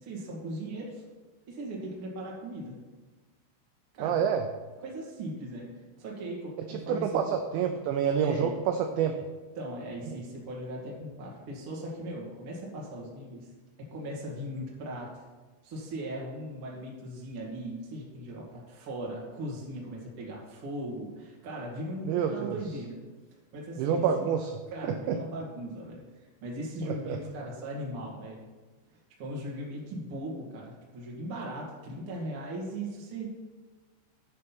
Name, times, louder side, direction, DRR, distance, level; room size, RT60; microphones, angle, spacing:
voice 1, 0.0-1.0 1.5-2.8 3.9-4.2 4.8-5.7 6.0-7.2 8.2-8.5 9.5-13.5 13.9-15.2 15.6-23.0 23.5-24.3 24.7-28.4 28.9-33.3, right 1 dB, 60° right, -3 dB, 1.4 m, -38 dB
voice 2, 4.0-4.4 6.7-9.2 22.1-22.6 23.8-24.5 25.1-25.2 26.8-27.2, right 7 dB, 85° right, 5 dB, 2.5 m, -28 dB
9.2 x 5.5 x 5.8 m, 1.3 s
omnidirectional pair, 5.8 m